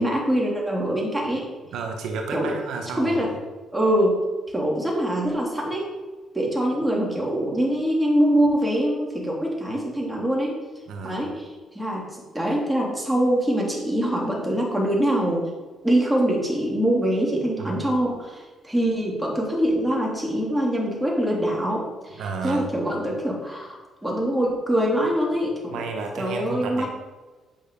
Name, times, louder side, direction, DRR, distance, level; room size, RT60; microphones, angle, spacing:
voice 1, 0.0-1.4 2.3-2.5 2.9-3.3 3.7-4.2 4.5-5.9 6.3-10.6 11.0-15.5 15.8-25.8 26.2-26.9, right 1 dB, 10° right, -3 dB, 2.8 m, -24 dB
voice 2, 1.7-3.3 10.9-11.3 17.6-17.9 22.2-22.7 25.7-26.9, right 4 dB, 80° right, 3 dB, 1.1 m, -32 dB
9.0 x 5.5 x 5.2 m, 1.3 s
cardioid pair, 90°, 0 cm